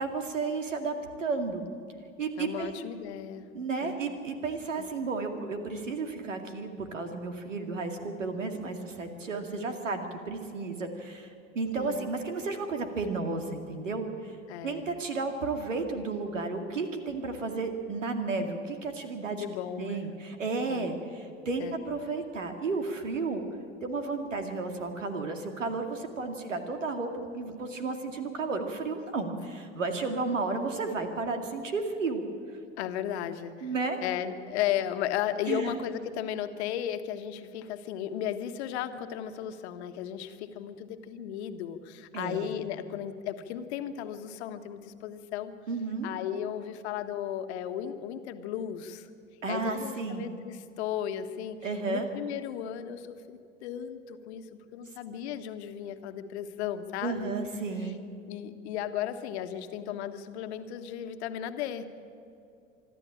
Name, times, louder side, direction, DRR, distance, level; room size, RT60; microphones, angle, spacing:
voice 1, 0.0-1.7 2.2-2.8 3.5-14.4 14.6-19.4 19.8-23.4 23.8-32.2 33.6-34.0 35.5-35.7 42.1-42.7 45.7-46.1 49.4-50.2 51.6-52.1 57.0-58.0, right 3 dB, 80° right, 6 dB, 2.3 m, -33 dB
voice 2, 2.4-3.5 3.8-4.0 4.8-4.9 11.7-12.0 14.5-14.9 19.3-20.1 20.7-20.9 21.6-21.8 32.8-33.7 34.0-45.5 46.0-49.1 49.5-51.6 51.9-54.5 54.7-57.3 58.3-61.9, left 10 dB, 60° left, 9 dB, 1.5 m, -35 dB
25.5 x 12.0 x 8.7 m, 2.7 s
figure-of-eight pair, 80°, 37 cm